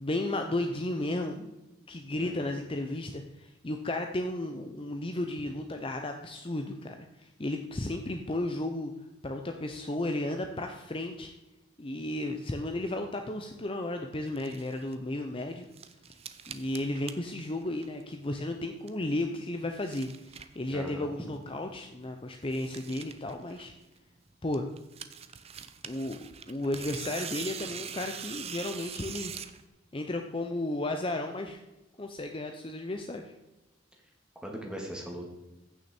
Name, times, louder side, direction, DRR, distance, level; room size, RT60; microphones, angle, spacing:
voice 1, 0.0-1.5 1.9-8.9 9.2-11.3 11.8-15.7 16.5-23.7 24.4-24.6 25.8-29.3 29.9-31.6 32.0-33.3, left 1 dB, 25° left, 5 dB, 0.7 m, -34 dB
sound 1, 14.3-14.9 15.4-18.2 18.5-19.1 19.5-21.0 21.4-21.5 21.7-21.8 22.0-22.1 22.4-24.1 24.5-29.6, right 8 dB, 30° right, 0.6 m, -43 dB
voice 2, 20.7-21.1 34.4-35.3, equal, 5° right, 0 dB, 2.0 m, -39 dB
15.0 x 6.3 x 4.4 m, 1.0 s
head